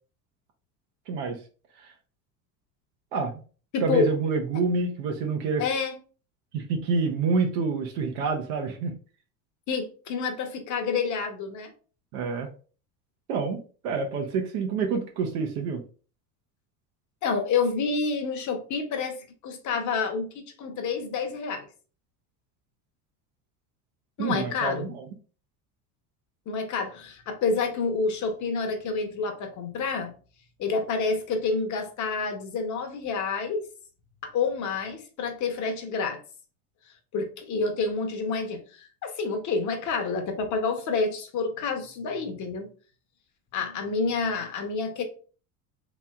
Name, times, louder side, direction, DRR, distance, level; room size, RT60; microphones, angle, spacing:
voice 1, 1.1-1.4 1.8-1.9 3.1-3.4 3.8-5.6 6.5-8.9 12.1-12.5 13.3-13.6 13.8-15.8 24.2-25.0, right 4 dB, 75° right, 0.8 m, -27 dB
voice 2, 3.7-4.1 5.6-5.9 9.7-11.7 17.2-19.2 19.4-21.7 24.2-24.9 26.5-30.1 30.6-33.7 34.2-36.2 37.1-42.7 43.5-45.0, left 4 dB, 45° left, 0.8 m, -28 dB
3.0 x 2.7 x 2.3 m
supercardioid pair, 95°, 43 cm